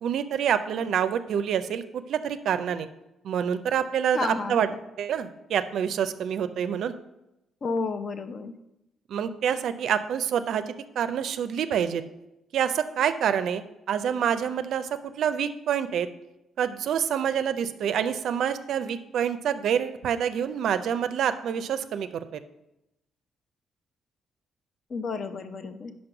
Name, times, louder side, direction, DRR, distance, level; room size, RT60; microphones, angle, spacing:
voice 1, 0.0-2.9 3.2-4.7 5.0-6.9 9.1-12.0 12.5-13.6 13.9-14.9 15.2-16.1 16.6-22.4, right 8 dB, 70° right, 11 dB, 0.4 m, -27 dB
voice 2, 4.1-4.7 7.6-8.5 24.9-25.9, left 4 dB, 50° left, 9 dB, 0.6 m, -31 dB
5.2 x 5.1 x 5.8 m, 0.91 s
cardioid pair, 90°, 0 cm